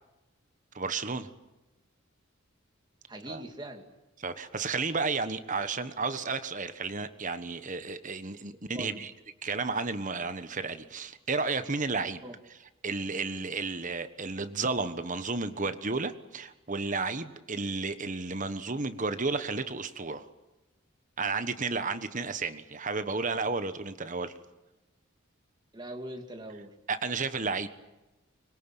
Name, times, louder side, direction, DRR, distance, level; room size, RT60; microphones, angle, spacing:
voice 1, 0.7-1.3 3.3-3.4 4.2-9.1 9.4-12.2 12.8-20.3 21.2-24.3 26.9-27.7, right 4 dB, 35° right, 11 dB, 1.3 m, -32 dB
voice 2, 3.1-3.8 8.7-9.1 12.2-12.4 25.7-26.7, right 1 dB, 20° right, 4 dB, 2.7 m, -41 dB
25.0 x 22.0 x 9.1 m, 1.0 s
head